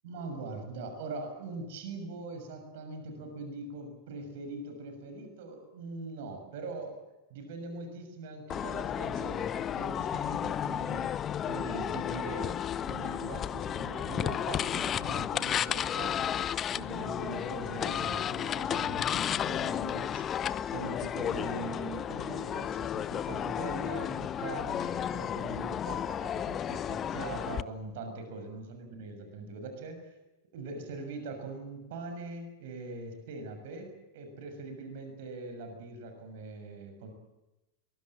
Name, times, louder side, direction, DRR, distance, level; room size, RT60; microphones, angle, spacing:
voice 1, 0.0-7.0 7.3-16.4 16.7-20.2 20.7-30.1 30.5-37.1, right 3 dB, 55° right, 7 dB, 6.3 m, -42 dB
sound 1, 8.5-27.6, left 9 dB, 25° left, 0.8 m, -33 dB
23.5 x 22.5 x 7.4 m, 0.99 s
figure-of-eight pair, 90°, 0 cm